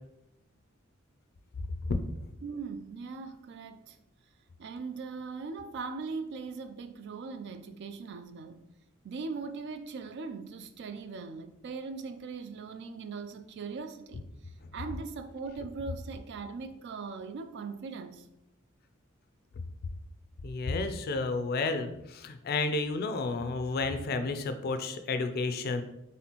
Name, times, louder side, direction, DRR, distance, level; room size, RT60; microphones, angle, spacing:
voice 1, 2.4-4.0 4.6-8.6 9.0-14.2 14.7-18.2, right 4 dB, 60° right, 0.4 m, -40 dB
voice 2, 20.4-25.8, left 3 dB, 50° left, 0.4 m, -31 dB
4.2 x 3.6 x 2.9 m
head